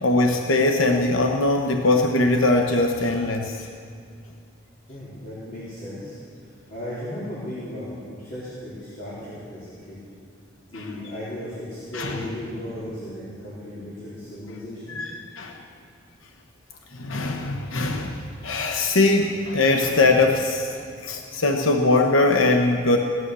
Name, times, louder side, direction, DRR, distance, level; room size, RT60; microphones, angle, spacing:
voice 1, 0.0-3.7 10.8-11.0 11.9-12.2 14.9-15.6 16.9-23.0, left 2 dB, 85° left, 3 dB, 1.0 m, -21 dB
voice 2, 4.9-6.2 6.7-10.0 10.7-15.0, left 1 dB, 45° left, -11 dB, 4.0 m, -36 dB
17.0 x 11.5 x 6.9 m, 2.4 s
head